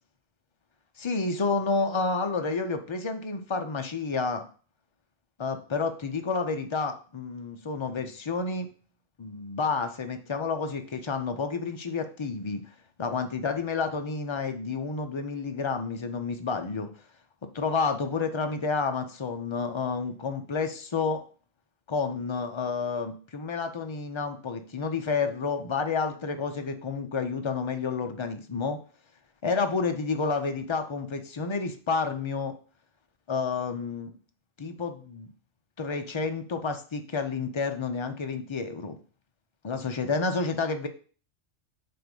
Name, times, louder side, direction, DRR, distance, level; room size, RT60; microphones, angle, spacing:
voice 1, 1.0-4.5 5.4-8.7 9.2-12.6 13.0-16.9 17.5-21.2 21.9-28.8 29.4-32.6 33.3-34.1 34.6-35.3 35.8-39.0 39.6-40.9, left 4 dB, 40° left, 6 dB, 0.4 m, -30 dB
7.7 x 2.6 x 5.2 m, 0.41 s
omnidirectional pair, 1.3 m